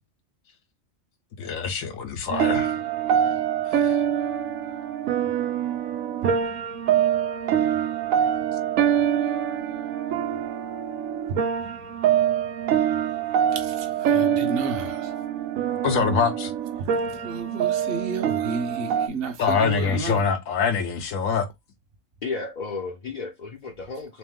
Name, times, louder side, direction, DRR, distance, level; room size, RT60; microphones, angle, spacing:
voice 1, 1.4-2.7 3.7-4.0 15.8-16.5 19.4-21.5, left 6 dB, 80° left, 1.1 m, -24 dB
sound 1, 2.3-19.1, right 9 dB, 80° right, 1.0 m, -25 dB
voice 2, 13.5-15.2 16.8-20.3, right 4 dB, 50° right, 0.9 m, -32 dB
voice 3, 22.2-24.2, left 4 dB, 50° left, 0.6 m, -33 dB
3.4 x 3.1 x 3.6 m
omnidirectional pair, 1.4 m